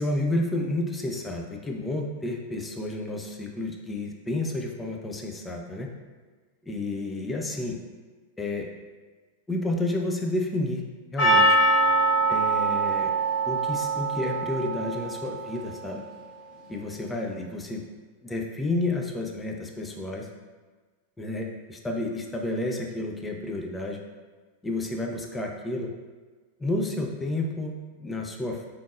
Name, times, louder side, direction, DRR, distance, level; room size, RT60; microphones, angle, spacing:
voice 1, 0.0-5.9 6.6-7.8 8.4-8.7 9.5-10.8 11.1-11.6 12.3-13.1 13.5-16.0 16.7-17.8 18.2-20.3 21.2-24.0 24.6-25.9 26.6-28.7, left 2 dB, 10° left, 1 dB, 0.4 m, -30 dB
Percussion, 11.2-15.7, right 2 dB, 35° left, 1.3 m, -23 dB
3.5 x 3.0 x 2.4 m, 1.4 s
figure-of-eight pair, 90°, 0 cm